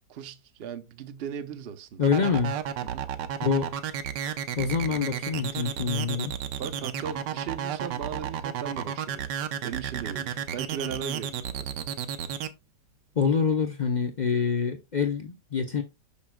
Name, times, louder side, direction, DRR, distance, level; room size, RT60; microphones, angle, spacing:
voice 1, 0.1-2.2 2.8-3.1 6.6-9.3 9.6-11.7, right 8 dB, 55° right, 0.7 m, -37 dB
voice 2, 2.0-2.6 3.4-3.7 4.6-6.4 13.2-15.8, left 6 dB, 50° left, 0.5 m, -26 dB
sound 1, 2.0-12.5, right 9 dB, 90° right, 1.4 m, -32 dB
8.4 x 6.1 x 2.2 m
omnidirectional pair, 1.8 m